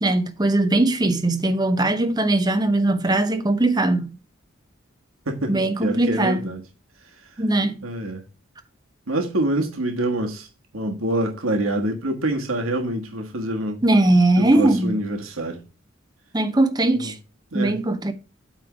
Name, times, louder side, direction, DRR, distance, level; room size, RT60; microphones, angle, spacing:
voice 1, 0.0-4.1 5.5-6.4 7.4-7.8 13.8-15.0 16.3-17.1 17.5-18.1, right 2 dB, 20° right, 0.8 m, -20 dB
voice 2, 5.3-6.6 7.8-8.2 9.1-10.5 10.7-13.8 14.4-15.6 17.0-17.1 17.5-17.7, right 1 dB, 85° right, 1.4 m, -26 dB
8.9 x 3.4 x 5.9 m
head